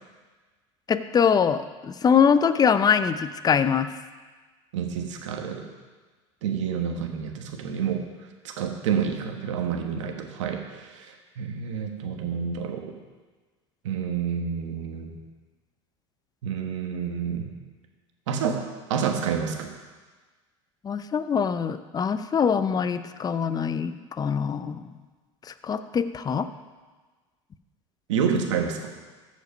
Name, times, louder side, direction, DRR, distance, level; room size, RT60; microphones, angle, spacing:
voice 1, 0.9-3.9 20.8-23.9 24.2-24.9 25.6-26.5, left 7 dB, 25° left, 11 dB, 0.6 m, -23 dB
voice 2, 4.7-5.6 6.4-8.0 8.4-12.9 13.8-15.2 16.4-17.5 18.3-18.6 18.9-19.7 28.1-28.9, right 7 dB, 80° right, 4 dB, 1.4 m, -28 dB
14.5 x 5.3 x 5.2 m, 1.3 s
hypercardioid pair, 85°, 16 cm